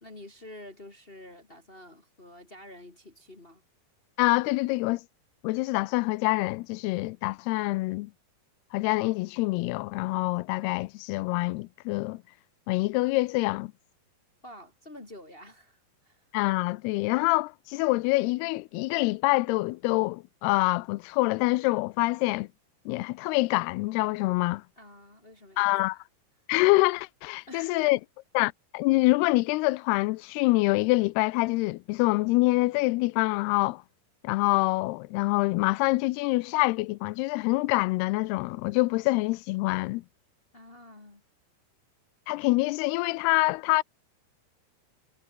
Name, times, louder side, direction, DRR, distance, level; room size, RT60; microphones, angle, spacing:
voice 1, 0.0-3.6 14.4-16.2 24.8-25.8 27.5-27.8 40.5-41.2, left 1 dB, 35° left, 0.9 m, -48 dB
voice 2, 4.2-5.0 5.4-8.1 8.7-12.2 12.7-13.7 16.3-22.5 22.9-24.6 25.6-26.0 26.5-28.0 28.3-33.8 34.2-40.0 42.3-43.8, left 22 dB, 85° left, 2.6 m, -26 dB
omnidirectional pair, 4.6 m